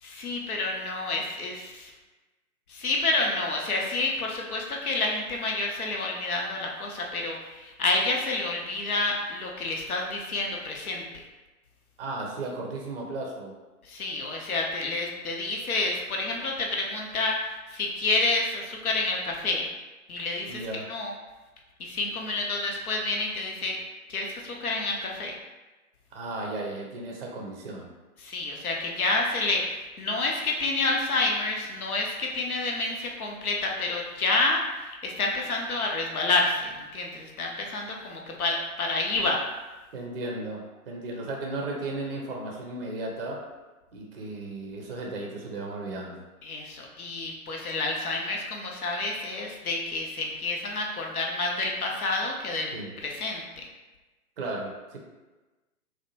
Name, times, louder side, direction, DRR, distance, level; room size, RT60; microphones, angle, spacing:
voice 1, 0.0-1.9 2.7-11.0 13.8-19.7 20.1-20.6 20.9-21.1 21.8-23.8 24.1-25.3 28.2-39.4 46.4-52.7 53.0-53.7, left 3 dB, 70° left, 0 dB, 0.7 m, -29 dB
voice 2, 12.0-13.5 20.5-20.9 26.1-27.9 39.9-43.4 43.9-46.2 52.7-52.9 54.4-55.0, right 2 dB, 40° right, -1 dB, 0.5 m, -35 dB
2.6 x 2.1 x 2.8 m, 1.2 s
figure-of-eight pair, 130°, 45 cm